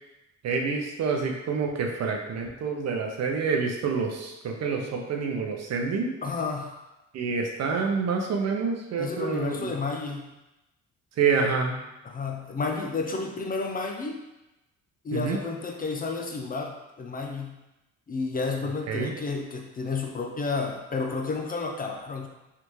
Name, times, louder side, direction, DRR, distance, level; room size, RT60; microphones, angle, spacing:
voice 1, 0.4-6.1 7.1-9.7 11.2-11.8 15.1-15.4 18.9-19.1, right 5 dB, 60° right, 2 dB, 0.6 m, -27 dB
voice 2, 6.2-6.8 9.0-10.3 12.0-14.2 15.0-17.6 18.1-22.3, left 4 dB, 30° left, 2 dB, 0.4 m, -31 dB
3.3 x 2.5 x 3.0 m, 0.97 s
cardioid pair, 90°, 30 cm